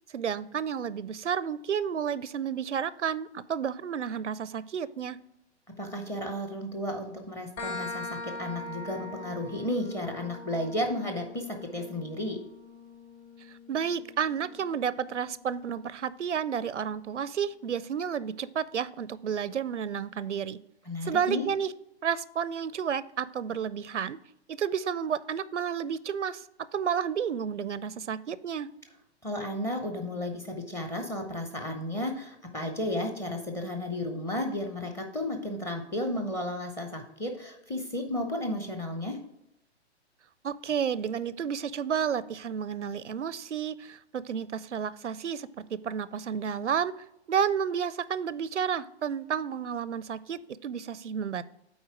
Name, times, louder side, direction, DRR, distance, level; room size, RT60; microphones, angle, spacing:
voice 1, 0.1-5.2 13.7-20.6 21.0-21.7 22.0-24.2 24.5-26.4 26.7-28.7 40.4-46.9 47.3-51.4, right 7 dB, 85° right, 18 dB, 0.5 m, -31 dB
voice 2, 5.8-12.4 20.9-21.4 29.2-39.2, left 1 dB, 10° left, 4 dB, 0.6 m, -33 dB
sound 1, 7.6-15.0, left 2 dB, 25° left, 1.1 m, -42 dB
8.1 x 4.4 x 4.5 m, 0.82 s
figure-of-eight pair, 120°, 34 cm